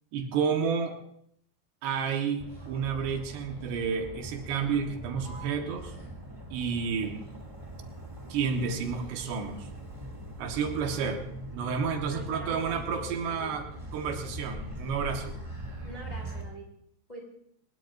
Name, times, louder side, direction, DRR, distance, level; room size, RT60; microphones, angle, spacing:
voice 1, 0.1-1.0 1.8-6.0 6.5-7.2 8.3-9.7 10.4-11.2 11.5-13.7 13.9-15.4, right 6 dB, 80° right, 4 dB, 3.6 m, -30 dB
Motor vehicle (road), 2.4-16.4, right 1 dB, 10° right, 2.0 m, -42 dB
voice 2, 12.0-13.5 15.8-16.6 17.1-17.2, right 1 dB, 10° left, -1 dB, 3.2 m, -44 dB
23.0 x 21.0 x 2.7 m, 0.71 s
omnidirectional pair, 4.8 m